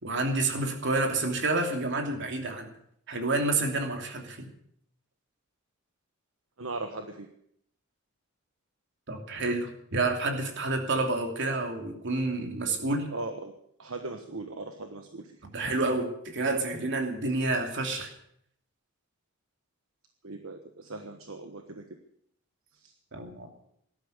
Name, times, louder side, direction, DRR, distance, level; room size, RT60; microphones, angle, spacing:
voice 1, 0.0-2.7 3.1-4.5 9.1-13.1 15.5-18.1 23.1-23.5, right 2 dB, 60° right, 4 dB, 2.9 m, -29 dB
voice 2, 6.6-7.3 13.1-13.5 13.8-15.4 20.2-21.9 22.8-22.9, right 2 dB, 75° right, 6 dB, 1.3 m, -39 dB
18.0 x 12.0 x 6.7 m, 0.71 s
head